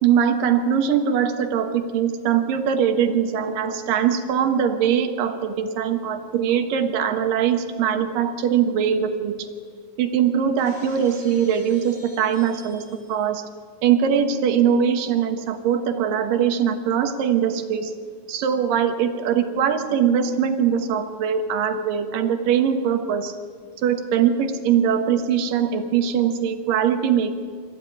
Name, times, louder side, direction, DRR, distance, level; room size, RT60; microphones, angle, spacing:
voice 1, 0.0-9.3 10.0-13.4 13.8-17.9 18.3-23.4 23.8-27.3, right 8 dB, 70° right, 7 dB, 3.0 m, -21 dB
Shatter, 10.6-13.3, left 2 dB, 40° left, 4.3 m, -48 dB
25.0 x 14.5 x 9.2 m, 2.1 s
omnidirectional pair, 4.1 m